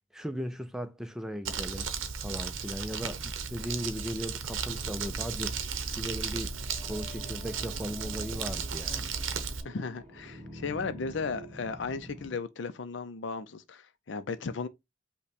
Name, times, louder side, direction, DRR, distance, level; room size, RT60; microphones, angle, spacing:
voice 1, 0.1-1.9 2.2-5.6 6.0-6.5 6.8-9.1, equal, 5° right, 0.4 m, -37 dB
Crumpling crinkling, 1.4-9.6, right 6 dB, 85° right, 0.7 m, -35 dB
sound 1, 4.7-12.4, equal, 15° left, 2.7 m, -47 dB
voice 2, 9.6-14.7, left 4 dB, 65° left, 0.5 m, -35 dB
5.7 x 2.2 x 4.1 m
head